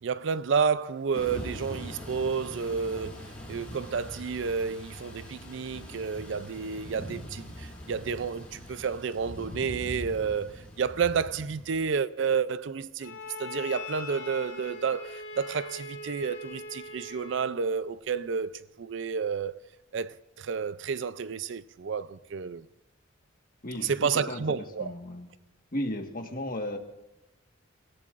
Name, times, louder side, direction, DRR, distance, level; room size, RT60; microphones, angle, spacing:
voice 1, 0.0-19.6 19.9-22.7 23.8-24.9, right 6 dB, 60° right, 0.4 m, -30 dB
Thunder / Rain, 1.1-11.9, equal, 5° left, 4.9 m, -42 dB
Bowed string instrument, 13.0-17.6, left 3 dB, 75° left, 2.4 m, -41 dB
voice 2, 23.6-25.3 25.7-26.8, left 1 dB, 45° left, 1.5 m, -35 dB
29.5 x 16.5 x 2.5 m
head